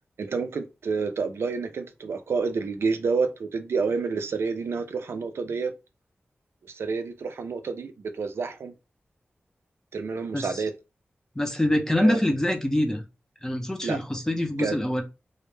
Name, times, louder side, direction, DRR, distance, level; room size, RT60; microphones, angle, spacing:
voice 1, 0.2-5.7 6.7-8.7 9.9-10.7 12.0-12.2 13.8-14.0 14.6-14.8, right 4 dB, 80° right, 0.4 m, -29 dB
voice 2, 10.3-10.6 11.4-13.0 13.4-15.0, left 1 dB, 15° left, 0.4 m, -25 dB
2.1 x 2.0 x 3.0 m
wide cardioid pair, 90°, 4 cm